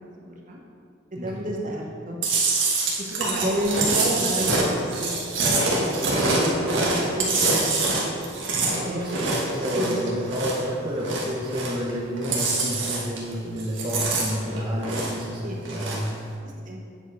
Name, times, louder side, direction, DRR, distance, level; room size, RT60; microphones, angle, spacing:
voice 1, 0.2-0.6 1.1-2.2 3.0-5.1 5.9-9.0 9.7-9.9 15.4-15.6 16.7-16.8, equal, 45° right, -1 dB, 1.1 m, -31 dB
Chewing mastication, 2.2-10.7 11.0-11.9 12.2-13.3 13.6-15.3 15.6-16.1, right 3 dB, 85° right, 1.5 m, -25 dB
voice 2, 8.7-16.1, equal, 25° right, -5 dB, 0.8 m, -30 dB
8.8 x 4.8 x 4.7 m, 2.3 s
head